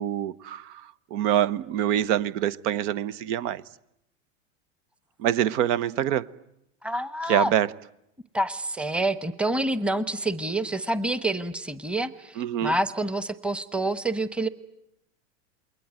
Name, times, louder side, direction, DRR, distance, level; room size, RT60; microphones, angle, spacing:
voice 1, 0.0-3.6 5.2-6.3 7.3-7.7 12.4-12.7, right 11 dB, 65° right, 17 dB, 1.1 m, -25 dB
voice 2, 6.8-7.5 8.3-14.5, right 1 dB, 5° right, 13 dB, 1.1 m, -27 dB
28.0 x 21.5 x 9.5 m, 0.80 s
hypercardioid pair, 110°, 38 cm